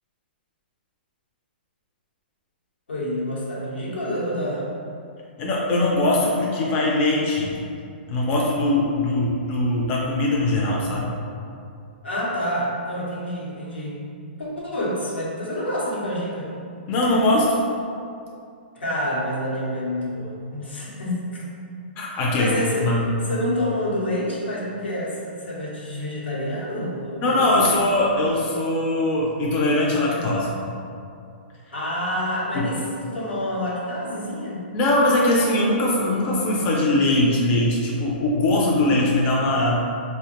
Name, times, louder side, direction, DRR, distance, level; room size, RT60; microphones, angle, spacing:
voice 1, 2.9-4.7 12.0-14.0 14.4-16.5 18.8-21.4 22.1-22.9 23.3-27.3 27.6-27.7 31.7-34.6, left 1 dB, 90° left, -6 dB, 0.9 m, -28 dB
voice 2, 5.4-7.6 8.1-11.1 16.9-17.6 22.0-22.5 22.8-23.1 27.2-30.5 32.5-32.7 34.7-39.8, left 1 dB, 30° left, -4 dB, 0.4 m, -21 dB
3.3 x 2.1 x 2.8 m, 2.4 s
hypercardioid pair, 145°, 6 cm